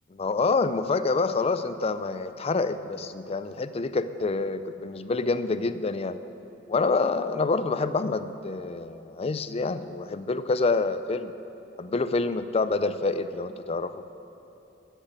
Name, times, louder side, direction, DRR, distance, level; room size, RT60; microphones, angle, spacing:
voice 1, 0.1-6.2 6.7-11.3 11.8-14.0, left 3 dB, 30° left, 12 dB, 0.4 m, -27 dB
13.0 x 6.5 x 8.8 m, 3.0 s
head